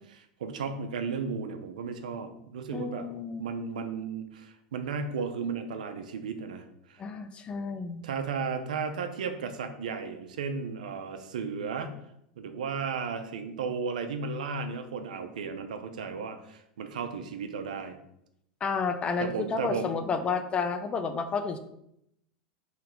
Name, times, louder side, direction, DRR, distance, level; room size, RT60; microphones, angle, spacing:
voice 1, 0.1-3.1 3.4-7.0 8.0-11.9 12.4-18.0 19.2-19.9, right 5 dB, 85° right, 8 dB, 0.8 m, -34 dB
voice 2, 2.7-3.5 7.0-8.1 18.6-21.6, left 5 dB, 25° left, 9 dB, 0.6 m, -31 dB
5.8 x 3.4 x 5.1 m, 0.78 s
supercardioid pair, 115°, 4 cm